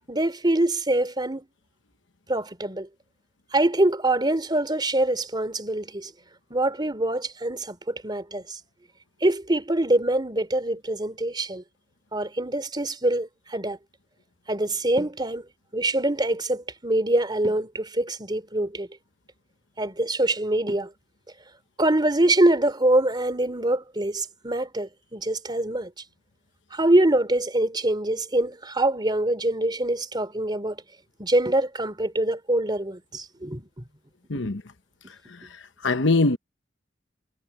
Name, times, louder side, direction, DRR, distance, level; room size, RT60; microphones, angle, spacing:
voice 1, 0.1-1.4 2.3-2.9 3.5-6.1 6.5-8.6 9.2-11.6 12.1-13.8 14.5-15.4 15.7-18.9 19.8-20.9 21.8-25.9 26.7-30.8 31.2-33.7 34.3-34.4, right 1 dB, 25° right, 3.2 m, -24 dB
voice 2, 34.3-34.6 35.3-35.4 35.8-36.4, left 3 dB, 75° left, 1.1 m, -22 dB
head